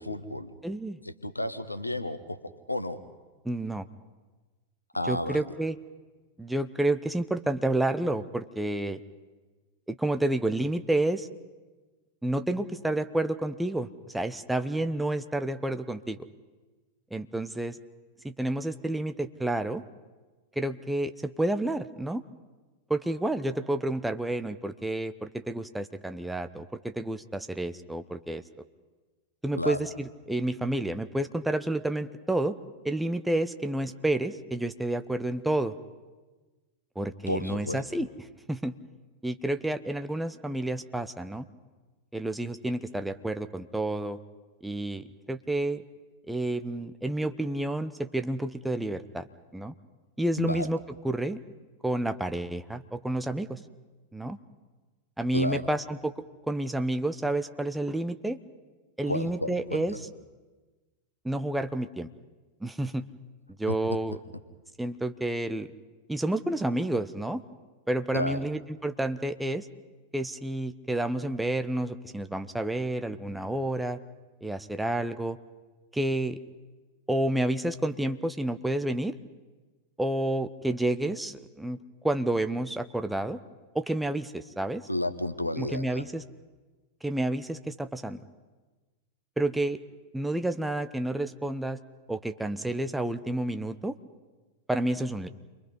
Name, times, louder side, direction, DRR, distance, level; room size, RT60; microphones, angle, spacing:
voice 1, 0.0-0.5 1.0-3.0 4.9-5.5 29.6-29.8 37.3-37.8 50.4-50.7 55.3-55.7 59.1-59.8 63.7-63.8 68.1-68.4 84.9-86.0, left 1 dB, 85° left, 12 dB, 1.3 m, -32 dB
voice 2, 0.6-1.0 3.4-3.9 5.1-5.8 6.4-9.0 9.9-11.3 12.2-13.9 14.1-16.2 17.1-17.8 18.2-19.8 20.6-22.2 22.9-28.4 29.4-32.6 32.8-35.7 36.9-38.1 38.5-38.7 39.2-41.4 42.1-44.2 44.6-45.8 46.3-49.3 49.5-49.7 50.2-50.8 51.0-51.4 51.8-53.6 54.1-54.4 55.2-56.1 56.5-58.4 59.0-60.0 61.2-62.1 62.6-63.0 63.6-64.2 64.8-65.7 66.1-67.4 67.9-69.7 70.1-74.0 74.4-75.4 75.9-76.4 77.1-79.1 80.0-83.4 83.7-84.8 85.6-86.2 87.0-88.2 89.4-89.8 90.1-91.8 92.1-94.0 94.7-95.3, right 1 dB, 5° right, 9 dB, 1.0 m, -30 dB
29.0 x 23.0 x 5.5 m, 1.3 s
figure-of-eight pair, 90°, 0 cm